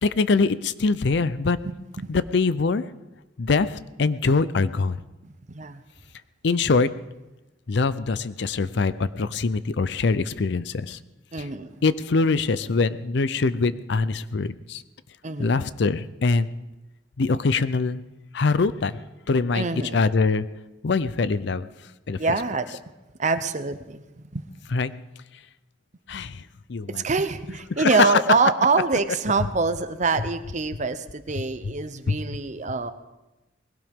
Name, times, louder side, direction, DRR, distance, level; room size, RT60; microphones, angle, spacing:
voice 1, 0.0-1.6 2.1-2.8 3.4-5.0 6.4-6.9 7.7-11.0 11.4-11.5 11.8-14.8 15.4-16.5 17.2-18.0 18.3-18.9 19.3-19.7 19.9-20.5 20.8-21.7 22.1-22.2 24.7-24.9 26.1-26.4 26.7-27.1 27.8-28.1 32.1-32.2, left 4 dB, 65° left, 15 dB, 0.5 m, -23 dB
voice 2, 1.6-2.1 5.2-5.8 11.3-11.8 15.2-15.5 19.5-20.0 22.2-22.7 23.2-24.4 27.0-32.9, right 4 dB, 40° right, 11 dB, 0.8 m, -25 dB
20.5 x 17.0 x 3.6 m, 1.0 s
head